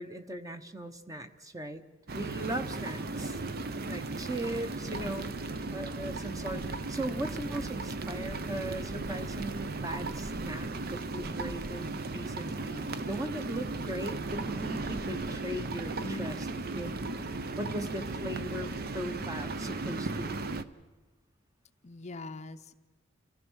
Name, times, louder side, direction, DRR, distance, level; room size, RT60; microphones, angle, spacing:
voice 1, 0.0-1.8 2.1-3.4 3.8-5.3 5.7-6.6 6.9-16.4 16.7-16.9 17.6-20.5, right 1 dB, 15° right, 8 dB, 0.9 m, -38 dB
sound 1, 2.1-20.6, right 3 dB, 50° right, 0.7 m, -36 dB
voice 2, 21.8-22.7, left 2 dB, 35° left, 9 dB, 0.6 m, -43 dB
28.5 x 15.0 x 6.3 m, 1.3 s
head